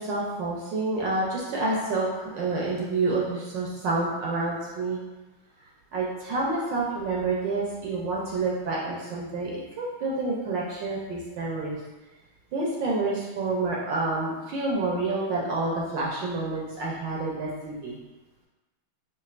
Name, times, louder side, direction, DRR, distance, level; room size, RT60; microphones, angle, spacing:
voice 1, 0.0-5.0 5.9-9.5 9.8-11.8 12.5-18.0, right 3 dB, 70° right, -4 dB, 1.2 m, -28 dB
5.3 x 2.3 x 2.4 m, 1.1 s
omnidirectional pair, 2.3 m